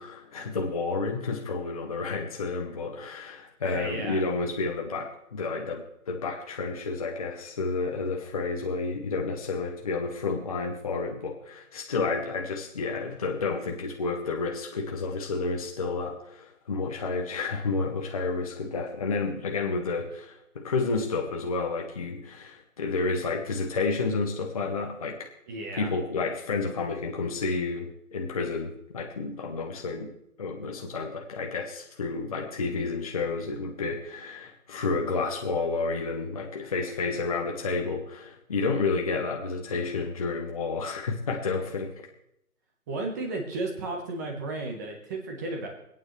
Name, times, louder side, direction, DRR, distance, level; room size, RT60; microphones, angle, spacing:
voice 1, 0.0-25.3 25.7-30.1 30.4-41.9, left 4 dB, 25° left, 1 dB, 0.9 m, -30 dB
voice 2, 3.6-4.2 25.5-25.9 42.9-45.7, right 2 dB, 10° right, 1 dB, 1.2 m, -34 dB
25.0 x 9.1 x 3.2 m, 0.82 s
figure-of-eight pair, 160°, 44 cm